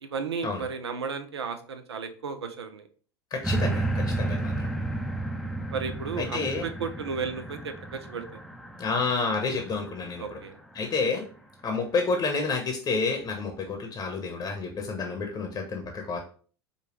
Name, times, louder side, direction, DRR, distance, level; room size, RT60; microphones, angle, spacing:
voice 1, 0.0-2.9 4.3-4.4 5.7-8.4 10.2-10.6, right 5 dB, 90° right, 8 dB, 0.5 m, -34 dB
voice 2, 3.3-4.7 6.2-6.7 8.8-10.4 10.7-11.2 11.6-16.2, left 4 dB, 30° left, 3 dB, 0.8 m, -29 dB
sound 1, 3.4-10.8 11.4-11.5, right 2 dB, ahead, 0.5 m, -32 dB
5.1 x 2.3 x 3.0 m, 0.42 s
hypercardioid pair, 85°, 13 cm